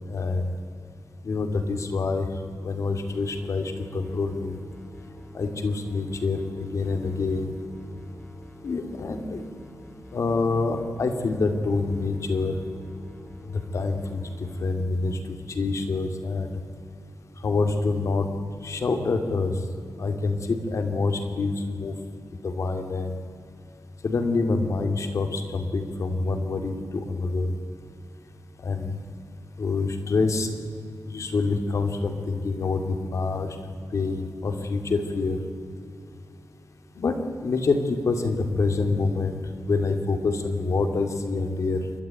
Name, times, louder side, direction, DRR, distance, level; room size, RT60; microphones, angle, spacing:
voice 1, 0.1-0.5 1.2-2.3 2.6-4.6 5.3-7.5 8.6-9.5 10.1-12.6 13.4-16.6 17.4-18.3 18.6-19.5 20.0-21.9 22.4-23.1 24.0-27.5 28.6-29.0 29.6-30.5 31.1-33.6 33.9-35.4 37.0-37.2 37.4-39.4 39.7-41.8, left 3 dB, 60° left, 6 dB, 2.4 m, -26 dB
sound 1, 3.1-14.7, equal, 15° left, 2.8 m, -47 dB
29.0 x 13.0 x 9.1 m, 2.4 s
wide cardioid pair, 150°, 6 cm